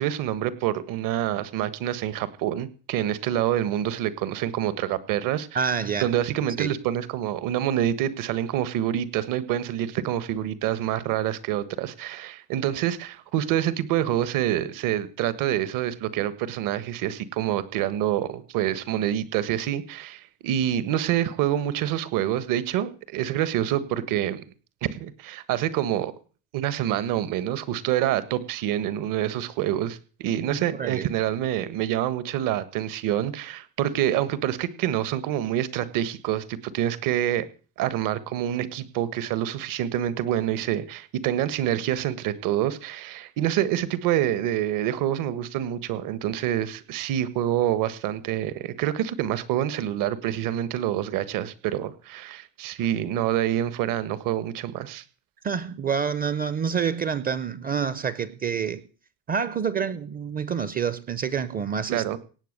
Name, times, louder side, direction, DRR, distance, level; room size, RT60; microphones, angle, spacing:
voice 1, 0.0-5.7 6.0-24.4 24.8-26.1 26.5-37.5 37.8-55.0 61.9-62.2, right 11 dB, 55° right, 15 dB, 1.5 m, -27 dB
voice 2, 5.5-6.1 6.6-6.7 30.7-31.1 55.4-58.8 59.3-62.0, right 6 dB, 25° right, 16 dB, 0.6 m, -27 dB
17.5 x 8.0 x 6.6 m, 0.38 s
cardioid pair, 160°, 38 cm